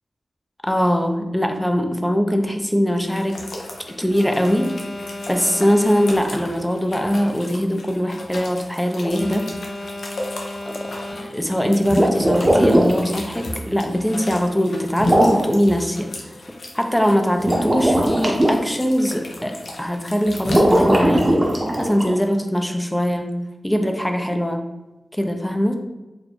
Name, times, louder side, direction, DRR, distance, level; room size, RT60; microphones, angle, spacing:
voice 1, 0.6-3.5 4.0-4.7 5.3-9.5 10.7-16.1 16.7-21.4 21.8-23.3 23.6-24.6 25.1-25.8, equal, 5° left, 5 dB, 0.4 m, -21 dB
sound 1, 3.0-20.8, left 1 dB, 80° left, 0.5 m, -37 dB
Alarm, 4.1-6.6 9.1-11.6, left 1 dB, 55° left, 0.9 m, -34 dB
sound 2, 11.8-13.0 15.0-15.5 17.4-18.5 20.4-22.1, right 1 dB, 30° right, 0.7 m, -18 dB
4.1 x 2.2 x 3.0 m, 1.1 s
wide cardioid pair, 75°, 0 cm